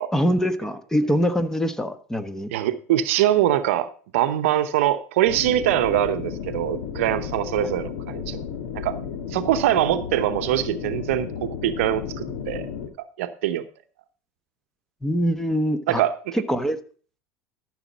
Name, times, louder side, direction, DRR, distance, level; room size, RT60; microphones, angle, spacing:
voice 1, 0.1-2.5 15.0-16.0 16.3-16.8, equal, 5° left, 10 dB, 1.1 m, -23 dB
voice 2, 2.5-8.4 8.7-9.0 9.3-12.7 13.2-13.6 15.9-16.1, right 12 dB, 75° right, 11 dB, 0.8 m, -23 dB
sound 1, 5.3-12.9, left 7 dB, 75° left, 1.4 m, -33 dB
13.5 x 6.3 x 4.1 m, 0.42 s
hypercardioid pair, 85°, 7 cm